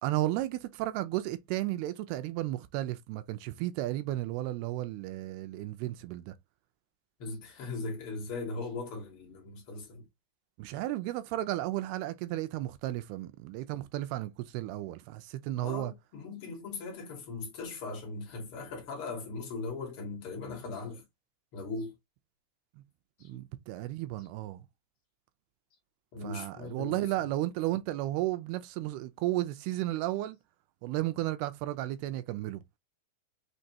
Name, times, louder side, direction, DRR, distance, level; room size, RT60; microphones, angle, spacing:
voice 1, 0.0-6.3 10.6-15.9 22.8-22.9 23.2-24.6 26.2-30.4 30.8-32.6, right 15 dB, 80° right, 2.4 m, -33 dB
voice 2, 7.2-10.0 15.6-21.0 21.5-21.9 23.2-23.3 24.2-24.3 26.1-27.3, left 3 dB, 75° left, 1.2 m, -39 dB
6.3 x 2.6 x 2.7 m
omnidirectional pair, 4.7 m